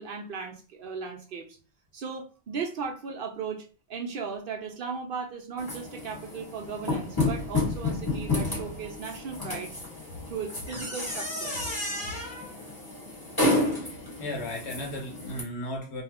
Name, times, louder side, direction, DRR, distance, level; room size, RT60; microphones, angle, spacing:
voice 1, 0.0-1.6 1.9-9.7 10.3-11.7, right 5 dB, 60° right, 3 dB, 0.7 m, -36 dB
sound 1, 5.6-15.4, left 2 dB, 20° left, 1.5 m, -31 dB
voice 2, 13.7-16.0, left 1 dB, 70° left, 1 dB, 1.2 m, -36 dB
2.6 x 2.3 x 3.4 m, 0.35 s
omnidirectional pair, 1.1 m